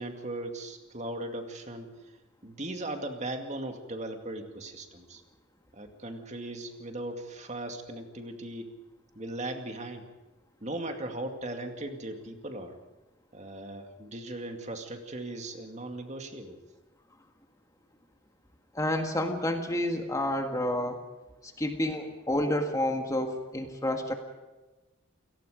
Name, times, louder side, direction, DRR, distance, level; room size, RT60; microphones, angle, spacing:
voice 1, 0.0-1.9 2.4-5.2 5.7-8.7 9.1-10.0 10.6-12.8 13.3-16.6, right 1 dB, 35° right, 5 dB, 2.3 m, -38 dB
voice 2, 18.7-21.0 21.4-24.1, left 1 dB, 15° left, 5 dB, 1.6 m, -29 dB
29.0 x 18.0 x 5.1 m, 1.1 s
head